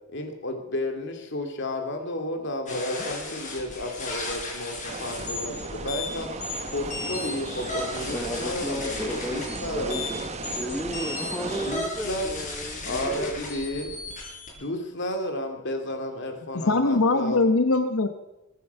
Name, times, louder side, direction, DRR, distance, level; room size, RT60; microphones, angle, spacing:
voice 1, 0.1-6.3 6.7-10.0 11.7-12.4 12.9-13.9 14.6-17.4, left 1 dB, 55° left, 5 dB, 2.4 m, -32 dB
sound 1, 2.7-14.5, left 3 dB, 35° left, 5.0 m, -35 dB
sound 2, 4.9-11.8, right 3 dB, 30° right, 1.1 m, -36 dB
voice 2, 8.1-10.3 10.6-13.3, equal, ahead, 4 dB, 1.1 m, -33 dB
voice 3, 16.7-18.1, left 3 dB, 75° left, 8 dB, 1.0 m, -21 dB
21.5 x 9.3 x 5.7 m, 0.98 s
head